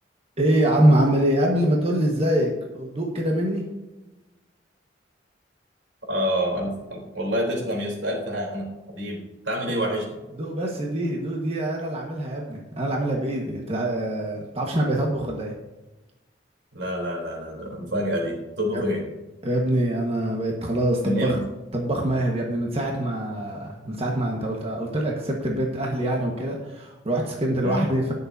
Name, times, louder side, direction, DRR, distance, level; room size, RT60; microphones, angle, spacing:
voice 1, 0.4-3.6 10.4-15.5 18.7-18.8 19.4-21.4 21.7-28.1, right 1 dB, 35° right, -1 dB, 1.5 m, -24 dB
voice 2, 6.1-10.2 16.7-19.0 21.0-21.4 27.6-27.9, equal, 85° right, -1 dB, 3.7 m, -27 dB
20.0 x 6.9 x 2.8 m, 1.1 s
head